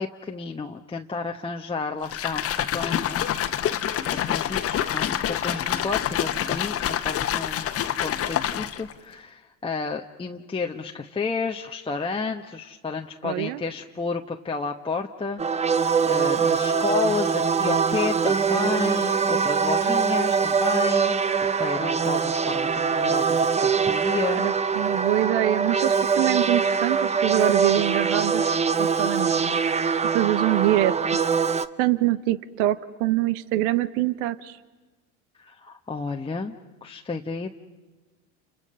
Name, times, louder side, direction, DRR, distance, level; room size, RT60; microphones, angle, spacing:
voice 1, 0.0-7.7 8.0-24.5 35.4-36.5 36.8-37.5, left 4 dB, 15° left, 2 dB, 1.0 m, -31 dB
sound 1, 2.0-8.9, left 10 dB, 40° left, 1.2 m, -27 dB
voice 2, 13.2-13.6 24.4-29.8 30.1-31.3 31.8-34.6, right 15 dB, 70° right, 16 dB, 1.1 m, -25 dB
sound 2, 15.4-31.7, right 6 dB, 15° right, 0.8 m, -23 dB
29.5 x 29.5 x 5.6 m, 1.2 s
hypercardioid pair, 90°, 37 cm